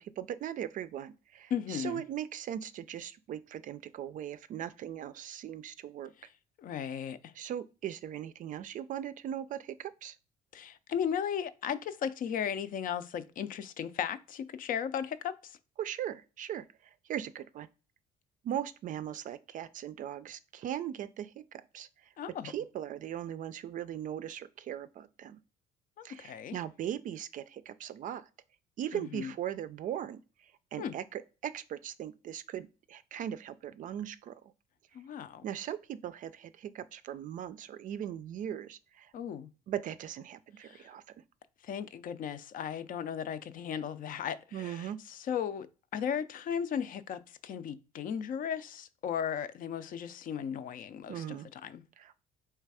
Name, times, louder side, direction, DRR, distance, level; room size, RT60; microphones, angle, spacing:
voice 1, 0.0-6.1 7.3-10.2 15.8-17.7 18.4-22.1 22.4-25.4 26.0-28.3 28.8-34.5 35.4-39.1 39.7-41.0 44.5-45.0 51.1-51.5 52.0-52.2, right 10 dB, 50° right, 0.4 m, -39 dB
voice 2, 1.5-2.0 6.6-7.3 10.5-15.6 22.2-22.5 26.0-26.6 28.9-29.3 30.8-30.9 34.9-35.4 39.1-39.5 40.6-40.9 41.6-45.7 45.9-51.8, left 8 dB, 55° left, 0.5 m, -36 dB
3.3 x 3.2 x 4.7 m
cardioid pair, 110°, 17 cm